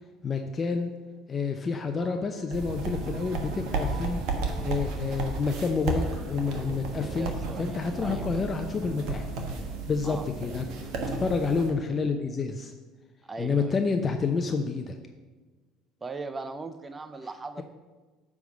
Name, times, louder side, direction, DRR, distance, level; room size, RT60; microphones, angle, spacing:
voice 1, 0.2-0.9 1.3-4.2 4.6-7.3 7.6-9.3 9.9-10.7 11.1-12.7 13.4-15.0, left 4 dB, 35° left, 5 dB, 0.7 m, -29 dB
sound 1, 1.3-12.3, right 4 dB, 80° right, 1.2 m, -51 dB
sound 2, 2.5-11.7, right 3 dB, 65° right, 1.4 m, -33 dB
voice 2, 7.0-8.3 10.0-10.2 13.3-13.8 16.0-17.6, right 3 dB, 25° right, 10 dB, 0.6 m, -39 dB
9.2 x 3.6 x 6.4 m, 1.3 s
hypercardioid pair, 75°, 0 cm